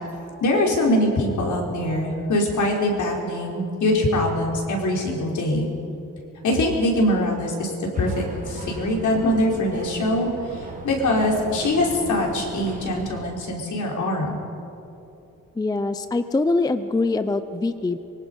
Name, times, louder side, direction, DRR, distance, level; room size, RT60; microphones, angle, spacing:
voice 1, 0.4-5.7 6.4-14.4, left 1 dB, 65° left, -1 dB, 4.6 m, -23 dB
sound 1, 7.9-13.2, right 3 dB, 25° right, 2.1 m, -37 dB
voice 2, 15.6-18.0, left 3 dB, 10° left, 10 dB, 0.5 m, -23 dB
25.0 x 23.5 x 5.5 m, 2.8 s
wide cardioid pair, 160°, 33 cm